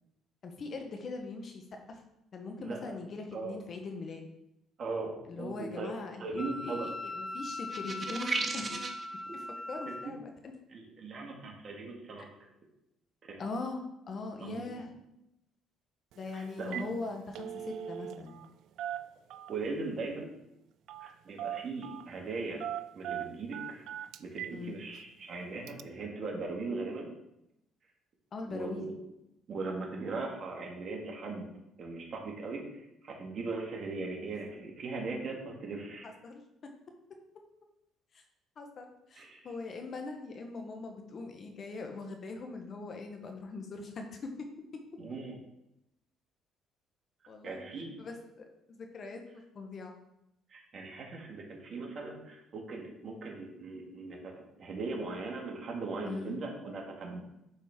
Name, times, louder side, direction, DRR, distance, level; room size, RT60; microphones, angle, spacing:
voice 1, 0.4-2.0 2.3-4.3 5.3-8.8 9.3-10.6 13.4-14.9 16.2-18.4 24.5-24.8 28.3-28.9 36.0-36.4 38.1-38.2 38.6-44.5 47.3-47.6 48.0-50.0 56.0-56.4, left 3 dB, 45° left, 4 dB, 1.1 m, -41 dB
voice 2, 4.8-6.9 8.7-8.8 9.9-10.1 10.7-12.3 13.3-13.4 14.4-14.7 16.3-16.9 19.5-20.3 21.0-22.6 22.9-23.8 24.2-27.1 28.5-28.9 29.5-31.5 31.8-36.1 39.2-39.4 45.0-45.4 47.4-48.0 50.5-57.2, right 3 dB, 50° right, 0 dB, 1.9 m, -39 dB
Wind instrument woodwind instrument, 6.4-10.1, left 2 dB, 20° left, 0.4 m, -40 dB
sound 1, 7.7-9.0, right 3 dB, 30° right, 0.9 m, -34 dB
Telephone, 16.1-16.3 16.6-16.9 17.2-18.5 18.8-19.7 20.9-21.1 21.4-22.1 22.6-24.6 25.0-25.1 25.7-25.8, right 11 dB, 70° right, 0.3 m, -39 dB
9.8 x 4.1 x 3.6 m, 0.86 s
cardioid pair, 90°, 0 cm